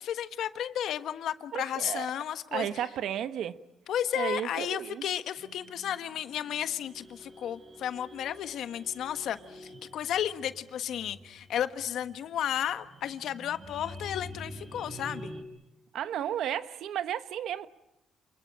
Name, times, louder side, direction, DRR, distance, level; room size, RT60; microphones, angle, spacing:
voice 1, 0.0-2.7 3.9-15.3, left 10 dB, 75° left, 1.4 m, -33 dB
voice 2, 1.5-2.1 2.5-3.6 4.1-5.0 15.9-17.7, right 10 dB, 75° right, 1.2 m, -33 dB
sound 1, 5.4-15.4, equal, 30° right, 5.3 m, -48 dB
28.5 x 21.5 x 8.8 m
cardioid pair, 90°, 0 cm